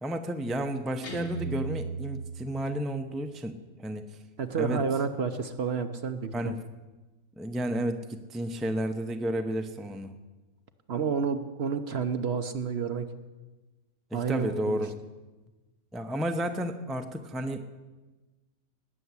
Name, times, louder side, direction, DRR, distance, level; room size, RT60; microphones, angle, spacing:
voice 1, 0.0-4.0 4.6-4.8 6.3-6.6 7.4-10.1 14.1-14.9 15.9-17.7, right 1 dB, ahead, 6 dB, 0.6 m, -32 dB
Guitar, 1.0-3.1, right 3 dB, 85° left, 3.0 m, -36 dB
voice 2, 4.4-6.3 10.9-13.1 14.1-14.8, right 6 dB, 50° right, 8 dB, 1.0 m, -30 dB
18.5 x 7.1 x 9.6 m, 1.2 s
omnidirectional pair, 1.5 m